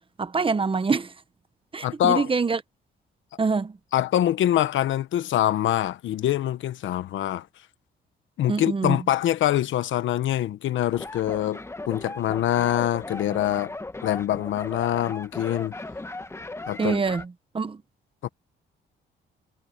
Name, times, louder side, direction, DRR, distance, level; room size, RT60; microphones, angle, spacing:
voice 1, 0.2-1.1 1.7-2.6 3.4-3.8 8.5-9.0 16.8-17.8, right 4 dB, 25° right, 1.1 m, -25 dB
voice 2, 1.8-2.3 3.9-7.5 8.4-13.7 14.0-15.7 16.6-17.0 18.2-18.3, left 12 dB, 75° left, 1.1 m, -24 dB
sound 1, 10.9-17.2, left 2 dB, 15° left, 1.3 m, -37 dB
cardioid pair, 90°, 20 cm